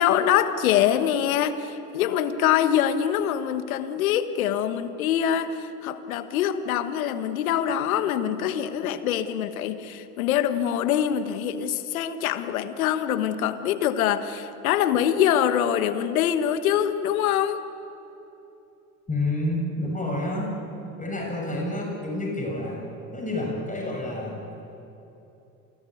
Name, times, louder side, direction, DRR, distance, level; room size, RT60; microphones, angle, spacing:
voice 1, 0.0-17.6, left 10 dB, 85° left, 10 dB, 1.5 m, -24 dB
voice 2, 19.1-20.5 21.0-22.8 23.1-24.4, left 1 dB, 20° left, -1 dB, 7.5 m, -29 dB
28.0 x 19.5 x 9.4 m, 2.9 s
hypercardioid pair, 65°, 41 cm